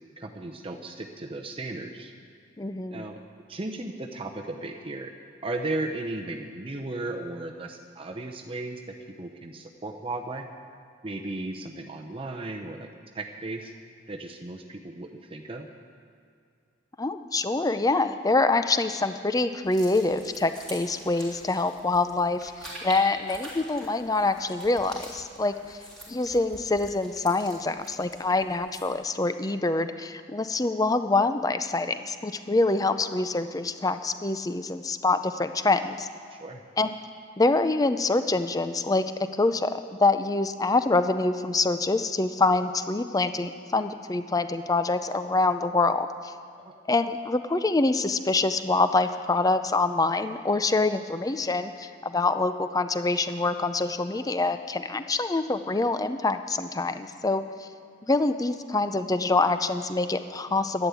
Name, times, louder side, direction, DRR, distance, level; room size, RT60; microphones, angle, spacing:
voice 1, 0.2-2.1 2.9-3.2 3.5-5.1 5.4-10.5 11.0-12.9 13.1-13.7 14.1-15.7 36.3-36.6 46.7-46.8, right 2 dB, 30° right, 3 dB, 0.7 m, -35 dB
voice 2, 2.6-3.0 17.0-25.8 26.1-36.1 36.8-36.9 37.4-39.7 40.0-46.3 46.9-57.7 58.1-60.9, left 3 dB, 20° left, 10 dB, 0.5 m, -25 dB
sound 1, 19.6-29.0, equal, 5° left, 3.4 m, -45 dB
11.5 x 11.0 x 8.3 m, 2.3 s
head